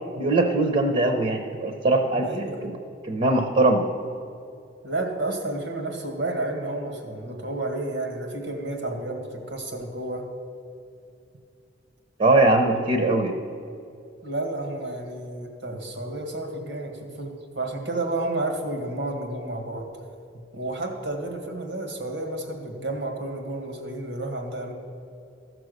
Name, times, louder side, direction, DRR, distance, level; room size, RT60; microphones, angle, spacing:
voice 1, 0.2-2.3 2.6-2.7 3.1-3.9 12.2-13.3, right 2 dB, 45° right, 4 dB, 0.7 m, -21 dB
voice 2, 2.2-2.7 4.8-10.2 12.6-13.0 14.2-19.8 20.3-24.7, right 2 dB, 85° right, 3 dB, 1.7 m, -31 dB
14.5 x 6.1 x 6.5 m, 2.6 s
head